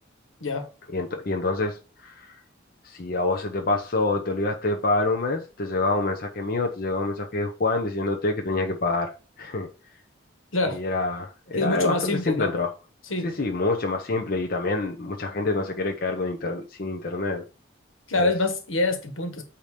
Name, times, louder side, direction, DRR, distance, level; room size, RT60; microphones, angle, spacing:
voice 1, 0.9-1.8 2.0-2.4 2.8-9.1 9.4-9.7 10.7-12.7 13.2-17.4 18.2-18.3, left 2 dB, 45° left, 0.8 m, -26 dB
voice 2, 11.5-12.5 13.1-13.3 18.1-19.4, left 2 dB, 85° left, 1.5 m, -25 dB
8.7 x 2.9 x 5.0 m
head